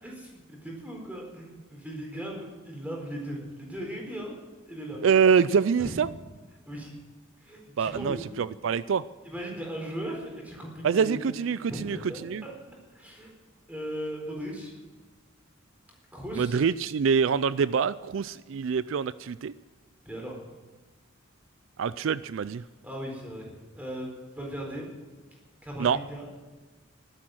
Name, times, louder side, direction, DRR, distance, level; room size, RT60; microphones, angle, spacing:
voice 1, 0.0-5.1 5.8-6.0 6.7-6.9 7.4-8.2 9.2-11.2 11.7-13.4 13.7-14.7 16.1-16.6 20.0-20.4 22.8-24.9 25.6-26.3, equal, 5° right, -1 dB, 4.1 m, -38 dB
voice 2, 5.0-6.1 7.8-9.0 10.8-12.0 12.2-12.4 16.4-19.5 21.8-22.6 25.8-26.0, right 6 dB, 70° right, 17 dB, 0.4 m, -25 dB
15.0 x 12.5 x 7.7 m, 1.3 s
head